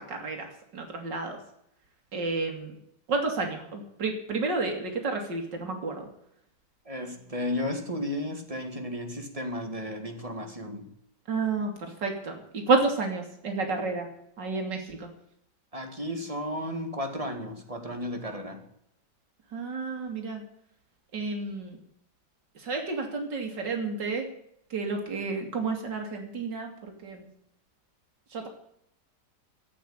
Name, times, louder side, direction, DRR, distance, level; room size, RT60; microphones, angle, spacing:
voice 1, 0.0-1.4 2.1-2.7 3.1-6.1 11.3-11.7 12.0-14.1 14.4-15.1 19.5-20.4 21.1-21.8 22.6-24.3 24.7-27.3 28.3-28.5, right 3 dB, 80° right, 3 dB, 3.1 m, -30 dB
voice 2, 6.9-10.9 15.7-18.6, left 1 dB, 20° right, 4 dB, 2.3 m, -34 dB
13.5 x 8.7 x 8.9 m, 0.75 s
omnidirectional pair, 1.9 m